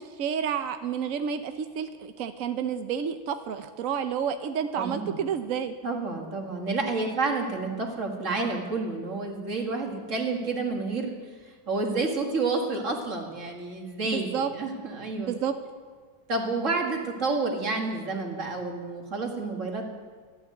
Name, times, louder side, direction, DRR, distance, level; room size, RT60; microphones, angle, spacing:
voice 1, 0.2-5.7 14.0-14.5 15.3-15.5, right 7 dB, 70° right, 9 dB, 0.8 m, -30 dB
voice 2, 4.7-5.3 5.8-11.2 11.4-15.3 16.3-19.9, right 3 dB, 40° right, 2 dB, 2.2 m, -30 dB
14.0 x 11.5 x 7.8 m, 1.5 s
omnidirectional pair, 2.2 m